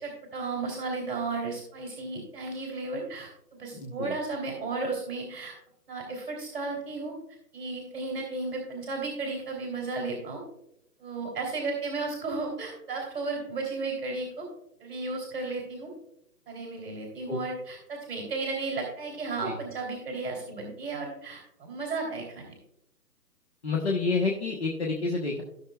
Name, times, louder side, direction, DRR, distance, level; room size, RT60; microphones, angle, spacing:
voice 1, 0.0-5.5 5.9-7.1 7.5-10.4 11.0-14.5 14.8-15.9 16.5-22.5, right 3 dB, 35° right, 0 dB, 3.0 m, -34 dB
voice 2, 3.7-4.2 17.3-17.4 19.4-19.6 23.6-25.4, left 3 dB, 40° left, -1 dB, 1.2 m, -29 dB
16.0 x 6.5 x 2.4 m, 0.79 s
hypercardioid pair, 170°, 50 cm